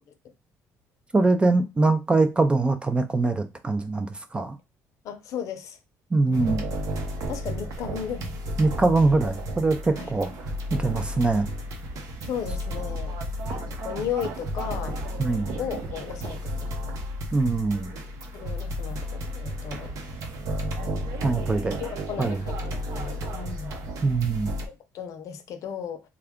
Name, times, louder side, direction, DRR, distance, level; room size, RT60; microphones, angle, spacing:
voice 1, 1.1-4.6 6.1-6.6 8.6-10.3 10.7-11.5 15.2-15.5 17.3-17.9 21.2-21.8 22.2-22.4 24.0-24.5, right 3 dB, 15° right, 0.4 m, -23 dB
voice 2, 5.0-5.8 6.3-6.5 7.1-8.4 10.0-10.1 12.2-13.2 13.7-15.0 15.6-16.9 18.3-19.9 20.8-21.1 21.8-23.8 24.7-26.0, left 8 dB, 60° left, 0.6 m, -35 dB
sound 1, 6.3-24.7, equal, 65° right, 0.8 m, -33 dB
3.3 x 2.3 x 3.5 m
cardioid pair, 140°, 6 cm